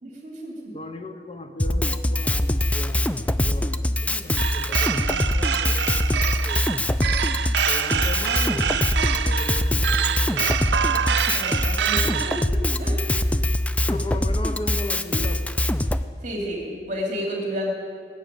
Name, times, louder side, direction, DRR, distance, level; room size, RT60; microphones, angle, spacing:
voice 1, 0.0-0.7 11.3-12.4 12.8-13.3 16.2-17.7, equal, 45° right, -1 dB, 2.8 m, -31 dB
voice 2, 0.7-6.7 7.7-10.6 11.0-11.4 12.5-12.8 13.2-13.3 13.9-15.5, left 1 dB, 35° left, 7 dB, 0.8 m, -37 dB
Drum kit, 1.6-16.0, left 1 dB, 10° left, 0.3 m, -23 dB
sound 1, 4.4-12.5, right 8 dB, 70° right, 0.5 m, -26 dB
19.0 x 7.7 x 8.9 m, 2.2 s
head